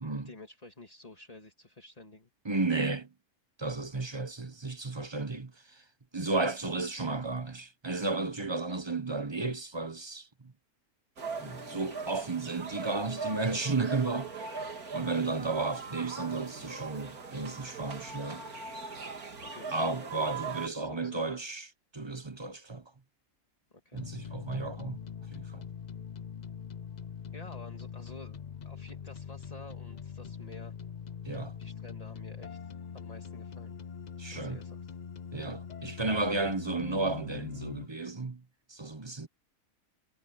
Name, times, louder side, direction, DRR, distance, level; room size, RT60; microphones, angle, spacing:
voice 1, 0.2-2.3 19.4-19.9 20.6-21.4 23.8-24.4 27.3-28.4 28.6-30.7 31.6-33.7 34.4-35.0, left 2 dB, 25° left, 2.3 m, -50 dB
voice 2, 2.4-3.1 3.6-5.8 6.1-10.5 11.4-14.3 14.9-18.4 19.7-21.7 21.9-22.8 23.9-25.0 25.3-25.6 31.2-31.5 34.2-34.6 35.3-38.4 38.7-39.3, right 3 dB, 20° right, 1.0 m, -33 dB
sound 1, 11.2-20.7, right 4 dB, 85° right, 3.0 m, -40 dB
sound 2, 23.9-37.9, left 7 dB, 50° left, 0.5 m, -43 dB
omnidirectional pair, 1.5 m